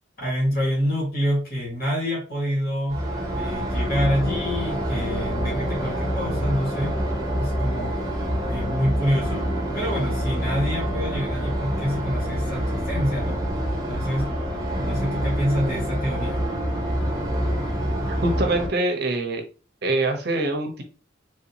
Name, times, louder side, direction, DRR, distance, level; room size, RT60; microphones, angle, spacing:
voice 1, 0.2-7.0 7.3-8.0 8.5-9.5 9.7-13.4 13.9-14.3 14.8-16.5, equal, 45° left, -4 dB, 1.5 m, -27 dB
sound 1, 2.9-18.7, equal, 20° right, 0.8 m, -26 dB
Wind instrument woodwind instrument, 3.9-12.1, equal, 20° left, 0.5 m, -37 dB
voice 2, 17.9-19.4 19.8-20.8, right 2 dB, 50° right, 4 dB, 0.7 m, -25 dB
3.4 x 2.6 x 2.8 m, 0.35 s
head